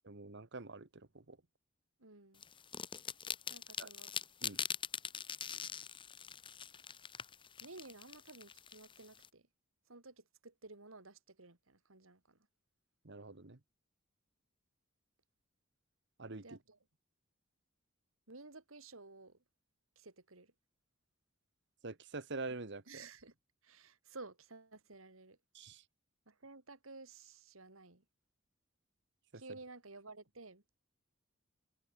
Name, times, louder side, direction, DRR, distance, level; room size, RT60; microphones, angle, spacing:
voice 1, 0.0-1.4 3.8-3.9 4.4-4.6 13.0-13.6 16.2-16.6 21.8-23.1 25.5-25.8, right 3 dB, 60° right, 1.4 m, -46 dB
voice 2, 2.0-2.4 3.5-4.1 7.6-9.5 9.9-12.4 16.4-16.8 18.3-19.4 20.0-20.5 22.9-23.3 23.6-25.4 26.3-28.0 29.3-30.6, right 3 dB, 85° right, 3.2 m, -54 dB
sound 1, 2.4-9.3, left 7 dB, 25° left, 1.0 m, -43 dB
head